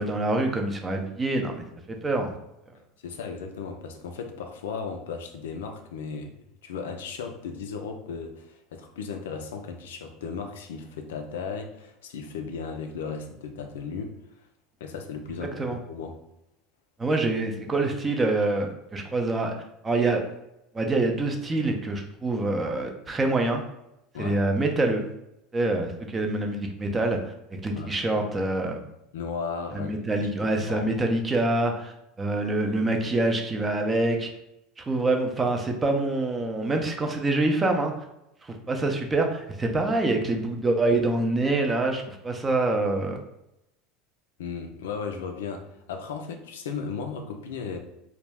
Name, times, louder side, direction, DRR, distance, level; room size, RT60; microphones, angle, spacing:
voice 1, 0.0-2.4 15.6-15.8 17.0-19.5 19.8-20.2 20.7-23.6 24.2-25.1 25.5-27.3 27.6-28.8 29.7-31.9 32.2-34.3 34.8-38.0 38.4-43.2, right 2 dB, 20° right, 3 dB, 0.5 m, -26 dB
voice 2, 3.0-6.3 6.6-14.2 14.8-16.2 24.1-24.4 27.7-27.9 29.1-29.9 30.4-30.9 44.4-47.8, left 5 dB, 85° left, 5 dB, 0.3 m, -35 dB
2.3 x 2.0 x 3.3 m, 0.86 s
hypercardioid pair, 95°, 0 cm